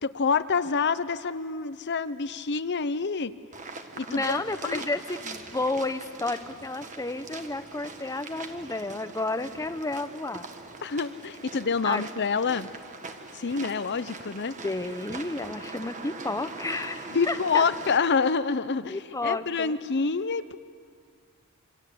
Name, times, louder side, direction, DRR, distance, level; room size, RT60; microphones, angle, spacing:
voice 1, 0.0-3.3 4.0-4.8 10.8-12.7 13.3-14.6 17.1-20.6, left 5 dB, 50° left, 14 dB, 0.8 m, -27 dB
sound 1, 3.5-18.0, right 3 dB, 35° right, 1.7 m, -42 dB
voice 2, 4.1-10.5 11.8-12.0 14.6-17.6 18.9-19.7, left 2 dB, 15° left, 10 dB, 0.9 m, -31 dB
27.0 x 25.5 x 8.6 m, 2.2 s
head